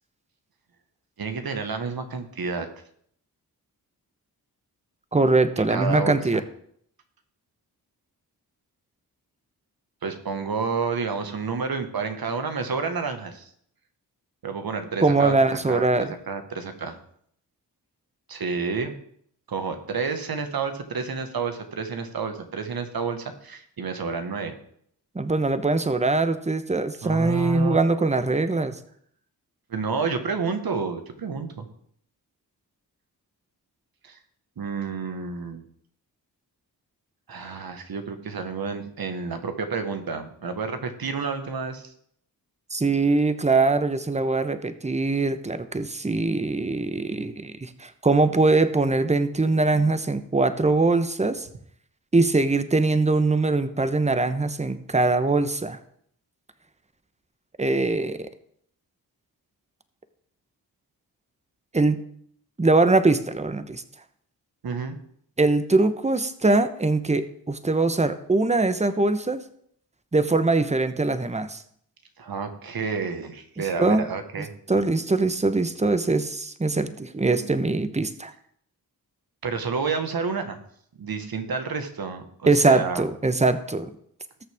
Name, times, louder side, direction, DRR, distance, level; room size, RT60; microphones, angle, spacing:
voice 1, 1.2-2.7 5.6-6.4 10.0-13.5 14.4-17.0 18.3-19.0 19.5-24.5 27.0-27.8 29.7-31.7 34.0-34.2 34.6-35.6 37.3-41.9 64.6-65.0 72.2-74.5 79.4-80.6 81.0-83.0, right 5 dB, 65° right, 7 dB, 1.6 m, -30 dB
voice 2, 5.1-6.4 15.0-16.1 25.1-28.7 42.7-51.5 52.1-55.8 57.6-58.3 61.7-62.0 62.6-63.8 65.4-69.4 70.1-71.6 73.8-74.1 74.7-78.3 82.5-83.9, right 3 dB, 15° right, 11 dB, 1.0 m, -22 dB
19.0 x 6.7 x 3.6 m, 0.66 s
cardioid pair, 50°, 39 cm